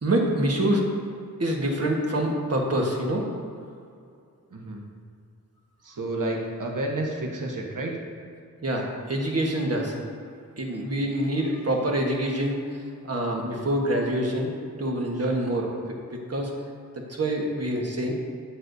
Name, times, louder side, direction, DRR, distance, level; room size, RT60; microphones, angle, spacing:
voice 1, 0.0-0.9 1.4-3.3 8.6-10.0 10.6-16.5 16.9-18.1, right 1 dB, 45° right, -1 dB, 1.4 m, -26 dB
voice 2, 4.5-4.8 5.8-7.9, right 1 dB, 60° right, 0 dB, 1.2 m, -30 dB
12.5 x 8.4 x 2.7 m, 2.4 s
wide cardioid pair, 115°, 35 cm